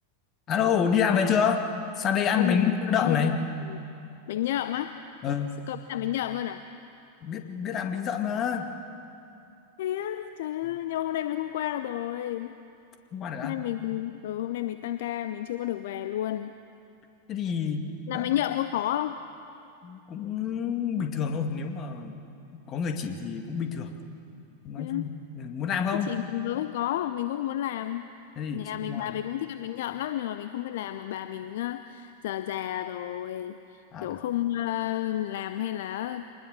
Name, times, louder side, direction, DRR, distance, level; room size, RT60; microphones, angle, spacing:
voice 1, 0.5-1.7 2.0-3.4 5.2-5.5 7.2-8.7 10.6-10.7 13.1-13.6 17.3-17.9 18.1-18.2 19.8-22.2 22.5-23.9 24.6-26.1 28.4-29.1 33.9-34.2, left 7 dB, 30° left, 6 dB, 2.0 m, -28 dB
voice 2, 3.0-3.3 3.7-3.8 4.3-4.9 5.7-6.6 9.8-12.5 13.4-16.5 18.1-19.2 24.8-25.0 25.9-28.1 28.5-36.2, left 13 dB, 55° left, 11 dB, 0.6 m, -31 dB
25.5 x 20.0 x 6.6 m, 2.6 s
figure-of-eight pair, 90°, 0 cm